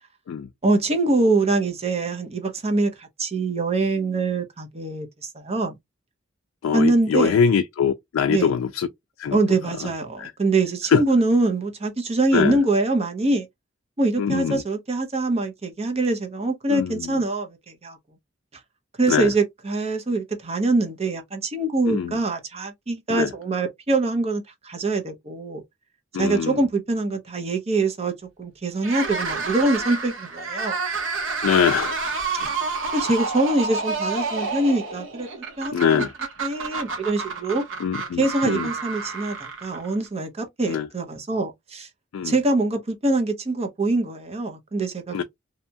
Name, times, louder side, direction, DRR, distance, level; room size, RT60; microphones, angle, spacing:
voice 1, 0.6-5.7 6.7-7.4 8.3-8.5 9.3-13.5 14.0-18.0 19.0-25.6 26.2-28.1 28.4-30.8 32.4-32.5 32.9-35.3 35.6-36.1 36.4-37.6 38.2-41.9 42.2-45.2, right 2 dB, 30° right, 0.7 m, -24 dB
voice 2, 6.6-8.9 9.2-9.4 9.8-9.9 10.2-10.3 10.9-11.0 12.3-12.6 14.2-14.6 16.7-17.2 19.1-19.3 21.9-22.2 23.1-23.3 26.1-26.6 31.4-32.0 35.7-36.1 37.8-38.7 40.7-40.9 42.1-42.3 45.1-45.2, left 7 dB, 80° left, 0.3 m, -23 dB
sound 1, 28.8-40.1, right 4 dB, 70° right, 1.0 m, -29 dB
2.8 x 2.2 x 2.7 m
head